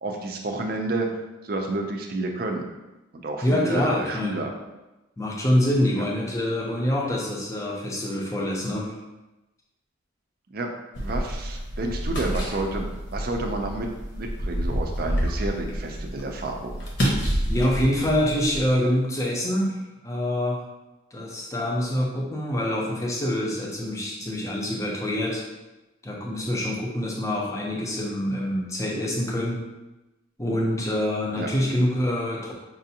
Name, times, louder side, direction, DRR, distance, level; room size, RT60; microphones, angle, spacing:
voice 1, 0.0-1.1 1.4-2.7 3.2-4.5 10.5-10.7 11.0-13.9 14.2-16.8 31.4-31.5, right 2 dB, 45° right, 3 dB, 0.5 m, -30 dB
voice 2, 3.4-4.4 5.2-8.9 17.5-19.8 20.0-20.6 21.1-25.4 26.0-29.6 30.4-32.5, left 1 dB, 15° left, -2 dB, 0.6 m, -25 dB
sound 1, 10.9-18.8, equal, 60° left, 1.0 m, -29 dB
5.4 x 2.5 x 2.7 m, 1.0 s
head